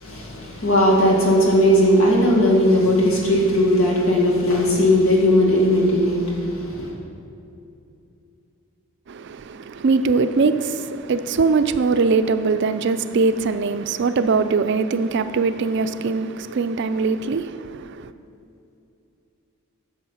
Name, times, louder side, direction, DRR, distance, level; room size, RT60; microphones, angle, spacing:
voice 1, 0.0-6.9, left 1 dB, 75° left, 1.9 m, -18 dB
voice 2, 9.1-18.1, right 4 dB, 55° right, 0.4 m, -21 dB
10.0 x 6.4 x 5.6 m
head